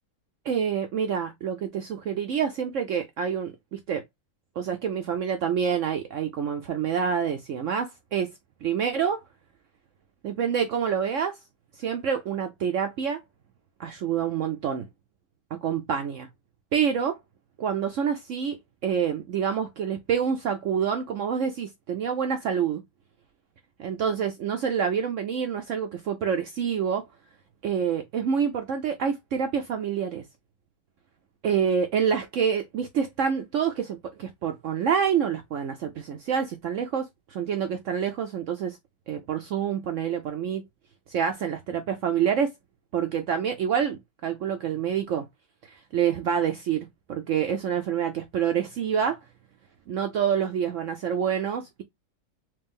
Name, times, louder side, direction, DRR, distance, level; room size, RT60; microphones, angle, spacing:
voice 1, 0.5-4.0 4.6-8.3 8.6-9.2 10.2-11.4 11.8-13.2 13.8-14.9 15.5-16.3 16.7-17.2 17.6-18.6 18.8-22.8 23.8-27.1 27.6-30.2 31.4-38.8 39.1-40.6 41.1-42.5 42.9-45.3 45.9-49.2 49.9-51.8, right 7 dB, 80° right, 0.6 m, -27 dB
3.2 x 3.0 x 3.5 m
omnidirectional pair, 1.9 m